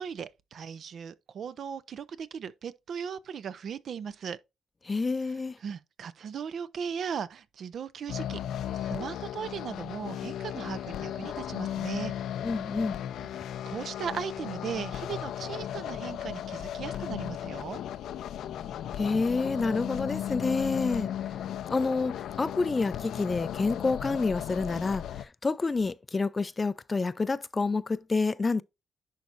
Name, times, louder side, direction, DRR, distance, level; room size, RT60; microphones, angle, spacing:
voice 1, 0.0-4.4 5.6-8.4 8.7-12.1 13.2-13.3 13.7-17.8, right 7 dB, 60° right, 0.6 m, -37 dB
voice 2, 4.8-5.6 12.4-13.0 19.0-21.1 21.7-28.6, left 3 dB, 25° left, 0.4 m, -28 dB
sound 1, 8.1-25.2, left 10 dB, 75° left, 0.5 m, -36 dB
10.5 x 4.2 x 2.5 m
cardioid pair, 90°, 0 cm